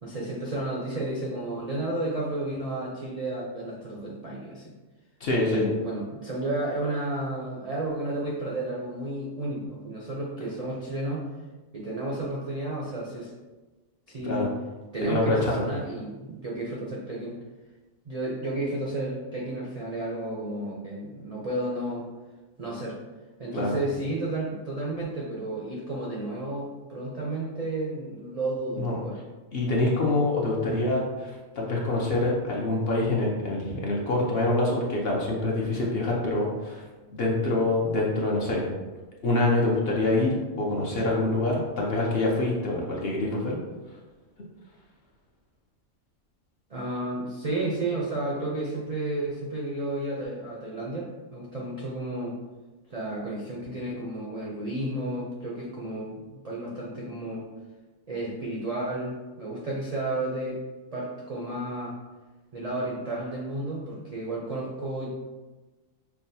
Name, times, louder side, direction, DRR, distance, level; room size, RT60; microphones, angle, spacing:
voice 1, 0.0-4.7 5.4-11.3 11.7-13.3 14.1-14.5 14.9-17.4 18.0-22.1 22.6-23.0 23.4-29.2 30.6-30.8 46.7-52.4 52.9-57.5 58.1-60.6 60.9-62.0 62.5-65.1, right 2 dB, 55° right, -4 dB, 0.4 m, -32 dB
voice 2, 5.2-5.7 14.2-14.5 15.0-15.7 23.5-23.8 28.8-29.0 29.5-36.8 37.1-38.7 39.2-43.6, left 2 dB, 55° left, -3 dB, 0.7 m, -25 dB
5.7 x 2.2 x 2.6 m, 1.2 s
omnidirectional pair, 1.4 m